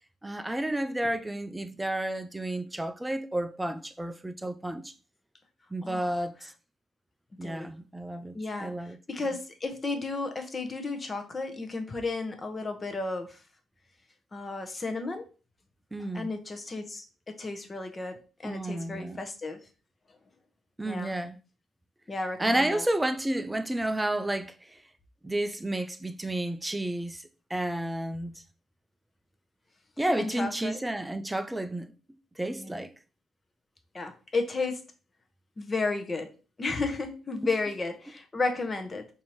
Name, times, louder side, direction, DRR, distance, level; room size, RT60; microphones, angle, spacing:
voice 1, 0.2-4.9 5.7-6.5 7.4-9.0 15.9-16.3 18.4-19.2 20.8-21.4 22.4-24.8 25.2-28.3 30.0-31.9 32.4-32.9, right 1 dB, 10° right, 0.4 m, -31 dB
voice 2, 5.8-6.1 7.4-7.7 8.3-8.7 9.1-13.4 14.3-15.3 16.1-19.6 20.8-21.1 22.1-22.9 30.2-30.8 32.5-32.8 33.9-34.8 35.6-39.1, left 3 dB, 30° left, 0.7 m, -33 dB
4.2 x 2.7 x 3.1 m
cardioid pair, 90°, 0 cm